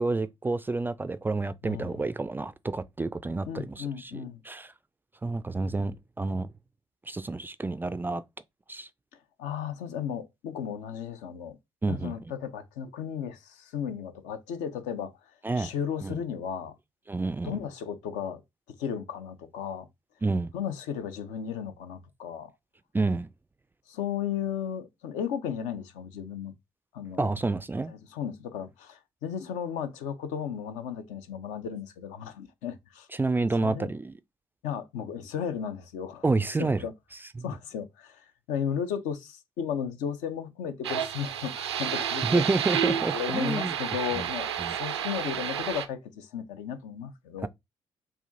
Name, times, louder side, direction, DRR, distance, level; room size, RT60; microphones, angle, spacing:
voice 1, 0.0-4.7 5.2-6.5 7.1-8.2 8.7-8.9 11.8-12.1 15.4-15.7 16.0-16.2 17.1-17.6 20.2-20.5 22.9-23.3 27.2-27.9 33.1-34.2 36.2-36.9 37.4-37.5 42.2-43.7 44.1-44.3 44.6-44.8 47.4-47.5, right 3 dB, 15° right, 0.3 m, -29 dB
voice 2, 1.6-2.0 3.5-4.4 9.4-11.6 11.9-15.2 15.6-16.7 17.4-18.4 18.8-19.9 20.5-22.5 23.9-26.5 26.9-27.3 27.9-33.1 33.6-33.9 34.6-36.2 36.6-36.9 37.4-38.2 38.5-42.4 43.1-47.5, left 8 dB, 65° left, 0.6 m, -34 dB
sound 1, 40.8-45.9, right 9 dB, 80° right, 0.4 m, -30 dB
6.9 x 2.5 x 2.6 m
figure-of-eight pair, 45°, 14 cm